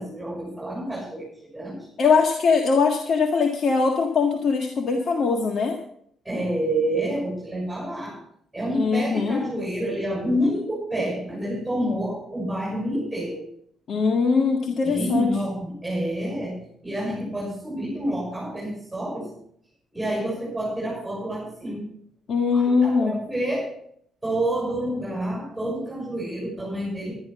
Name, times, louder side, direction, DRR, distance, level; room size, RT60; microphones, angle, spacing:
voice 1, 0.0-1.9 6.2-8.2 8.5-13.4 14.8-19.3 19.9-21.8 22.5-23.7 24.2-27.2, right 1 dB, 5° right, -3 dB, 6.4 m, -28 dB
voice 2, 2.0-5.8 8.7-9.4 13.9-15.3 22.3-23.2, left 5 dB, 55° left, 2 dB, 1.7 m, -21 dB
12.5 x 10.5 x 5.9 m, 0.68 s
cardioid pair, 90°, 0 cm